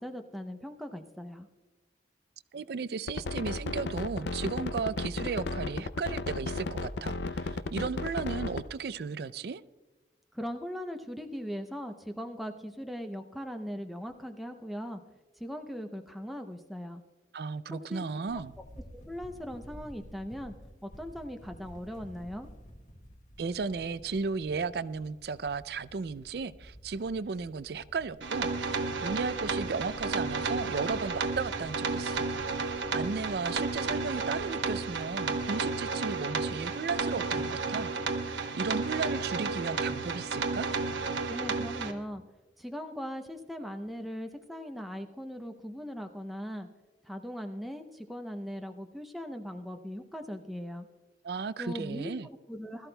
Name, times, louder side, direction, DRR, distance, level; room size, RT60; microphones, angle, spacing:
voice 1, 0.0-1.5 10.3-15.0 15.3-17.0 17.7-18.0 18.9-20.5 20.8-22.5 41.3-42.2 42.6-46.7 47.0-50.9 51.6-52.9, equal, ahead, 4 dB, 0.6 m, -39 dB
voice 2, 2.5-9.6 17.3-18.5 23.4-32.3 32.6-37.9 38.2-40.7 51.2-52.3, right 5 dB, 55° right, 16 dB, 0.4 m, -35 dB
sound 1, 3.1-8.6, left 3 dB, 70° left, 0.5 m, -34 dB
sound 2, 18.3-35.5, equal, 40° left, 1.5 m, -52 dB
sound 3, 28.2-41.9, right 4 dB, 85° right, 1.1 m, -32 dB
21.0 x 13.5 x 2.2 m, 1.2 s
head